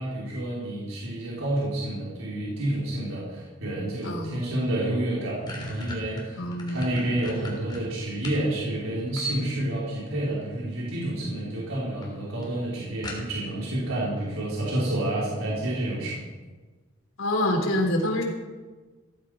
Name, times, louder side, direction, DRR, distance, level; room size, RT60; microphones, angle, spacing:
voice 1, 0.0-16.2, right 1 dB, 80° right, -6 dB, 4.3 m, -29 dB
voice 2, 4.0-4.4 6.4-6.9 17.2-18.2, left 1 dB, 80° left, 2 dB, 3.5 m, -26 dB
sound 1, 5.0-8.5 8.9-9.7 10.8-11.2 11.6-11.7 12.0-12.1 12.4-12.5 13.0-13.6, left 1 dB, 20° left, 3.4 m, -38 dB
16.0 x 14.5 x 5.1 m, 1.3 s
head